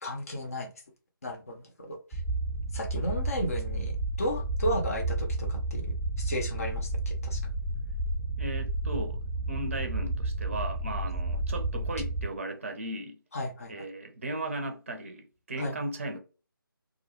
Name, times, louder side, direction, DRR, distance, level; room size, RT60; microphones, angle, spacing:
voice 1, 0.0-0.7 1.2-2.0 2.7-3.9 4.2-7.4 13.3-13.7 15.6-15.7, equal, 40° left, 0.7 m, -34 dB
sound 1, 2.1-12.3, right 2 dB, 10° left, 0.8 m, -31 dB
voice 2, 8.4-9.2 9.5-13.2 13.7-16.2, right 2 dB, 35° right, 0.6 m, -36 dB
2.3 x 2.2 x 2.8 m
figure-of-eight pair, 155°, 12 cm